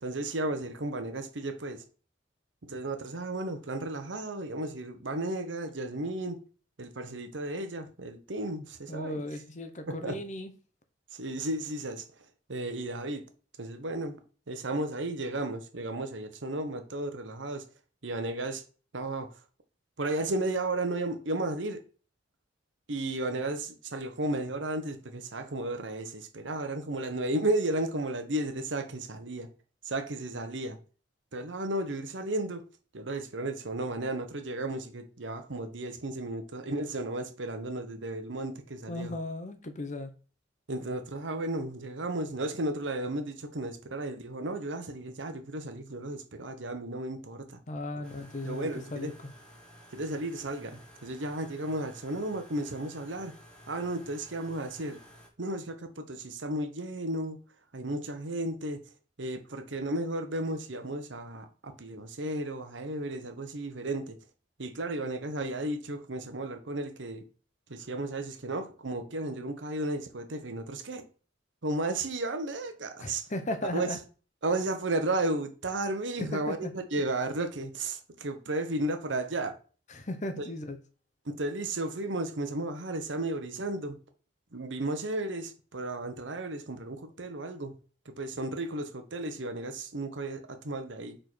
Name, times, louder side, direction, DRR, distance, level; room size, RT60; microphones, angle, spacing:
voice 1, 0.0-1.8 2.6-6.4 6.8-9.2 9.9-10.2 11.1-12.0 12.5-13.3 13.6-14.2 14.5-17.6 18.0-18.6 18.9-19.3 20.0-21.8 22.9-29.5 29.8-30.8 31.3-32.6 32.9-39.1 40.7-47.6 48.4-49.1 49.9-53.3 53.7-55.0 55.4-57.4 57.7-58.8 59.2-64.2 64.6-67.2 67.7-71.1 71.6-73.2 73.7-73.9 74.4-79.6 81.3-84.0 84.5-87.7 88.1-91.2, right 2 dB, 85° right, 1.0 m, -34 dB
voice 2, 8.9-10.5 38.9-40.1 47.7-49.1 73.0-74.0 76.2-76.7 79.9-80.8, left 1 dB, 40° left, 0.8 m, -36 dB
sound 1, 48.0-55.3, equal, 5° left, 1.4 m, -53 dB
5.1 x 4.4 x 4.6 m
head